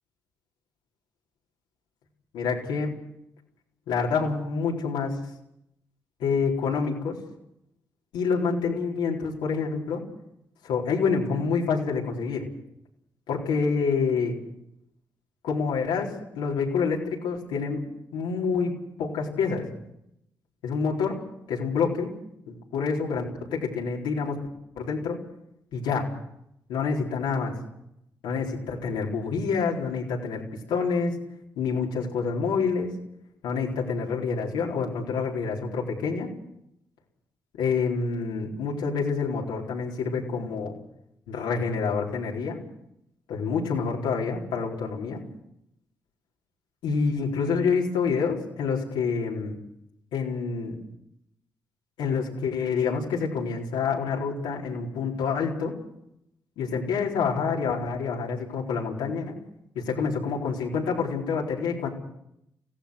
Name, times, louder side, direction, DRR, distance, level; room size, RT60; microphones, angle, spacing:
voice 1, 2.3-3.0 3.9-5.2 6.2-7.2 8.1-10.0 10.6-12.5 13.3-14.4 15.4-16.1 16.3-17.8 18.1-19.7 20.6-21.2 21.5-22.1 22.5-24.4 24.8-25.2 25.7-26.1 26.7-27.5 28.2-30.4 30.7-31.2 31.6-32.9 33.4-36.3 37.6-40.7 41.3-42.6 43.3-45.2 46.8-49.6 50.1-50.8 52.0-55.7 56.6-59.3 59.7-61.9, left 5 dB, 85° left, -2 dB, 4.3 m, -27 dB
25.5 x 16.5 x 6.6 m, 0.78 s
supercardioid pair, 50°, 8 cm